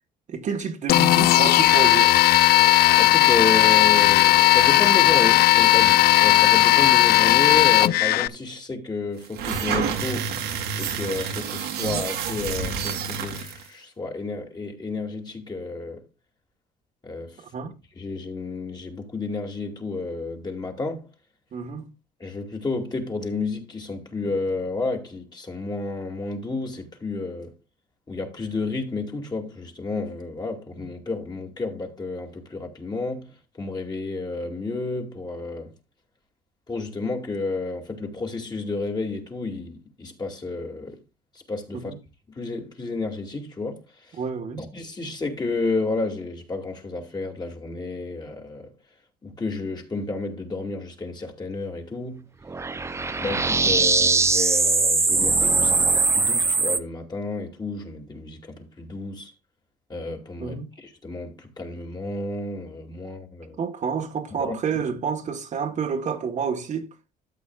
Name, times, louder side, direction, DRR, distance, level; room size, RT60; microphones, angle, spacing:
voice 1, 0.3-2.2 17.4-17.8 21.5-21.9 41.7-42.0 44.2-44.7 60.4-60.7 63.6-66.9, right 6 dB, 45° right, 1.5 m, -29 dB
sound 1, 0.9-8.3, left 16 dB, 65° left, 0.4 m, -16 dB
voice 2, 3.0-10.3 10.7-16.0 17.0-17.4 17.9-21.1 22.2-27.5 28.1-33.3 33.5-35.7 36.7-41.0 41.5-41.9 42.4-44.2 44.6-48.7 49.2-52.3 53.2-59.3 59.9-63.6 64.4-64.5, left 3 dB, 25° left, 2.6 m, -31 dB
sound 2, 9.2-13.7, right 7 dB, 90° right, 2.4 m, -29 dB
sound 3, 52.5-56.8, right 3 dB, 15° right, 0.6 m, -21 dB
13.0 x 8.2 x 2.4 m
cardioid pair, 110°, 17 cm